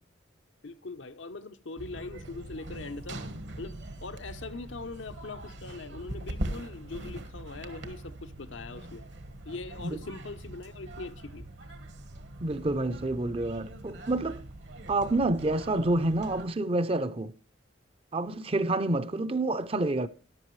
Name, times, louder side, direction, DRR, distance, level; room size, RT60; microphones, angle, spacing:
voice 1, 0.6-3.2 3.6-9.1 9.4-11.5, left 3 dB, 75° left, 0.8 m, -41 dB
sound 1, 1.8-16.5, right 1 dB, 65° right, 1.3 m, -42 dB
voice 2, 12.4-14.4 14.9-17.3 18.1-20.1, right 2 dB, 30° right, 0.6 m, -28 dB
13.5 x 11.0 x 3.2 m
head